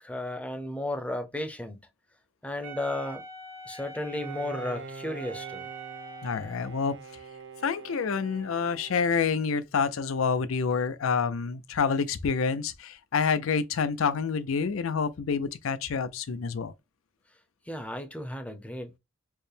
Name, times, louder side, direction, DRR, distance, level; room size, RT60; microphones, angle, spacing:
voice 1, 0.0-1.9 2.4-3.2 3.7-5.6 17.7-19.0, left 1 dB, 5° left, 0.6 m, -34 dB
Wind instrument woodwind instrument, 2.6-6.8, right 4 dB, 85° right, 1.3 m, -43 dB
Bowed string instrument, 4.2-9.8, right 4 dB, 65° right, 0.6 m, -45 dB
voice 2, 6.2-6.9 7.6-16.7, left 5 dB, 75° left, 0.5 m, -28 dB
4.5 x 2.1 x 3.3 m
head